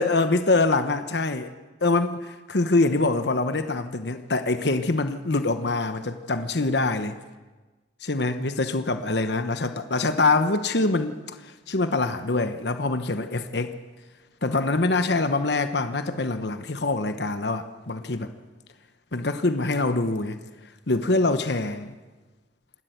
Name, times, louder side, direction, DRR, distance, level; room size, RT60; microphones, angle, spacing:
voice 1, 0.0-1.5 1.8-7.2 8.0-13.7 14.4-18.3 19.1-20.4 20.9-22.0, left 3 dB, 65° left, 9 dB, 1.1 m, -24 dB
27.5 x 12.5 x 9.2 m, 1.2 s
head